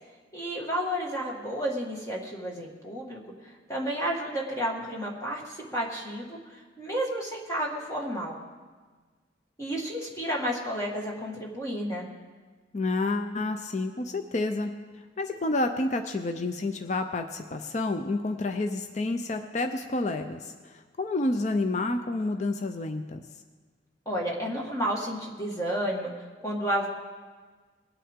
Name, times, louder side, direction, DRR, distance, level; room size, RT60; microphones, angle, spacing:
voice 1, 0.3-8.4 9.6-12.1 24.1-26.1 26.4-26.9, equal, 15° left, -2 dB, 1.8 m, -31 dB
voice 2, 12.7-14.7 15.2-23.2, left 2 dB, 40° left, 6 dB, 0.5 m, -29 dB
21.0 x 8.6 x 3.6 m, 1.4 s
head